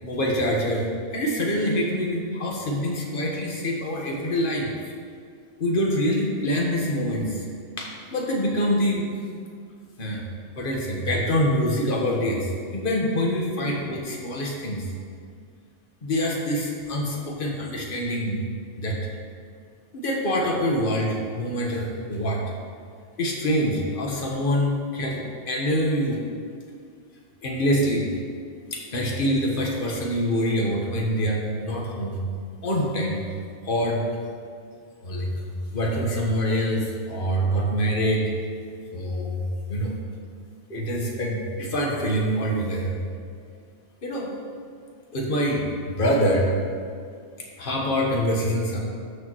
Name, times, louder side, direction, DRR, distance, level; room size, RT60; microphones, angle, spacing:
voice 1, 0.0-4.7 5.6-7.4 7.8-9.1 10.0-10.2 10.6-14.9 16.0-18.4 18.8-19.0 19.9-22.4 23.2-26.2 27.4-28.1 28.7-32.2 32.6-33.2 33.6-34.0 35.0-35.3 35.7-38.3 38.9-39.4 39.7-39.9 40.7-43.0 44.0-44.3 45.1-46.5 47.6-48.8, equal, 50° left, -2 dB, 1.4 m, -25 dB
13.0 x 6.7 x 3.0 m, 2.2 s
omnidirectional pair, 1.2 m